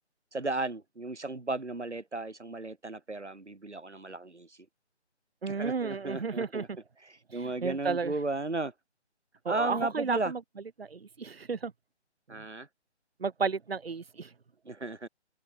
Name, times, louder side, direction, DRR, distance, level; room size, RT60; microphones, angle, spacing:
voice 1, 0.3-4.6 5.5-6.7 7.0-8.7 9.5-10.3 12.3-12.7 14.6-15.1, right 2 dB, 80° right, 4.8 m, -35 dB
voice 2, 5.4-6.6 7.3-8.1 9.4-10.4 10.8-11.7 13.2-14.3, right 5 dB, 60° right, 3.1 m, -33 dB
figure-of-eight pair, 150°, 34 cm